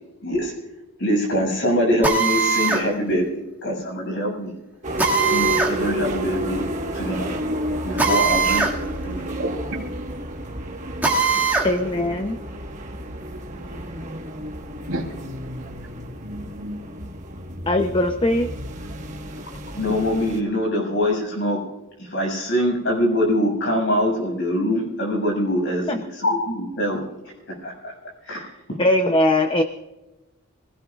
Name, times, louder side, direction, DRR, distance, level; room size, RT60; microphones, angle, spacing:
voice 1, 0.2-0.5 1.0-3.2 3.6-4.5 5.2-6.7 6.9-8.6 9.0-9.3 19.7-21.6 22.0-27.0 27.6-27.9 28.2-28.5, equal, 55° left, 0 dB, 6.8 m, -23 dB
Drill, 2.0-2.9 5.0-5.8 8.0-8.8 9.1-9.2 11.0-11.7, right 4 dB, 10° right, 2.0 m, -20 dB
sound 1, 4.8-20.4, equal, 35° right, 1.5 m, -31 dB
voice 2, 11.6-12.4 17.7-18.5 25.9-26.0 28.8-29.6, left 1 dB, 25° left, 6 dB, 0.7 m, -20 dB
voice 3, 14.8-15.4 15.8-17.0, right 1 dB, 75° right, 1 dB, 3.5 m, -32 dB
25.5 x 17.0 x 2.4 m, 1.1 s
head